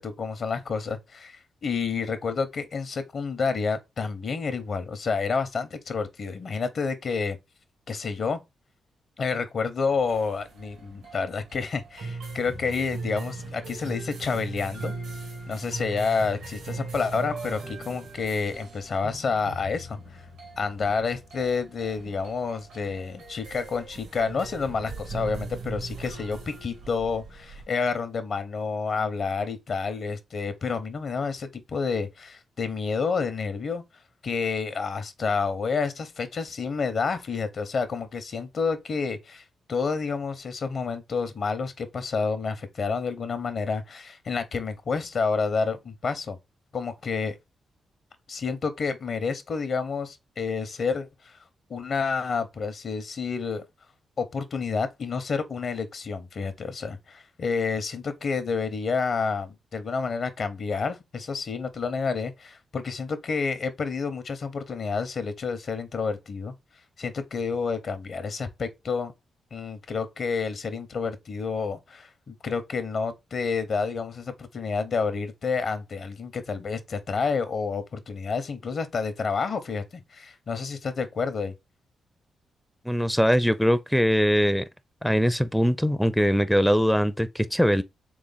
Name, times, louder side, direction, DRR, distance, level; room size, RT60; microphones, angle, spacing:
voice 1, 0.0-7.4 7.9-8.4 9.2-14.9 15.5-20.3 20.6-33.8 34.2-46.4 46.7-47.4 48.3-51.4 51.7-53.6 54.2-66.5 67.0-69.1 69.5-81.5, left 5 dB, 60° left, 0.7 m, -29 dB
sound 1, 9.9-27.7, right 3 dB, 85° right, 1.5 m, -39 dB
voice 2, 82.9-84.6 85.0-87.8, equal, ahead, 0.4 m, -22 dB
3.4 x 3.1 x 3.9 m
supercardioid pair, 50°, 0 cm